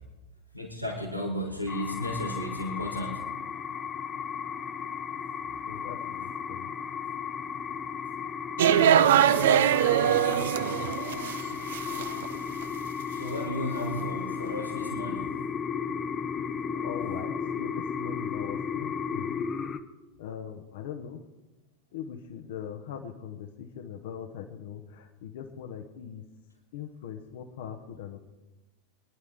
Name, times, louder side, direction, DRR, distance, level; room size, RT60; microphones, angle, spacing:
voice 1, 0.5-3.2 13.2-15.3 16.6-16.8, equal, 90° left, 0 dB, 2.2 m, -34 dB
sound 1, 1.7-19.8, left 6 dB, 25° left, 0.9 m, -34 dB
voice 2, 5.7-6.7 9.4-10.5 16.8-19.4 20.2-21.2 21.9-26.2 26.7-28.2, left 8 dB, 55° left, 4 dB, 1.1 m, -41 dB
sound 2, 8.6-11.4 11.7-12.4, right 10 dB, 60° right, 0.5 m, -22 dB
23.5 x 11.0 x 3.6 m, 1.1 s
figure-of-eight pair, 90°, 0 cm